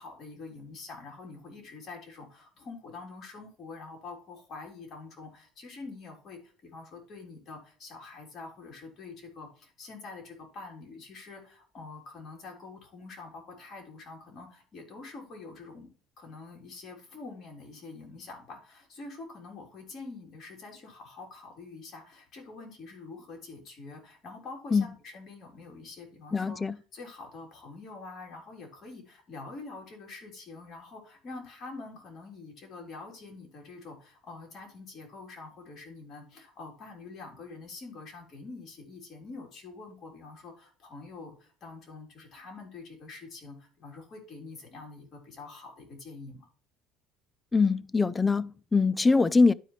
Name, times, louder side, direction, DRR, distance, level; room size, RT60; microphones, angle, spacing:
voice 1, 0.0-15.9 16.2-46.5, left 3 dB, 40° left, 3.5 m, -46 dB
voice 2, 26.3-26.7 47.5-49.5, left 4 dB, 15° left, 0.3 m, -23 dB
12.0 x 5.0 x 3.1 m
cardioid pair, 135°, 0 cm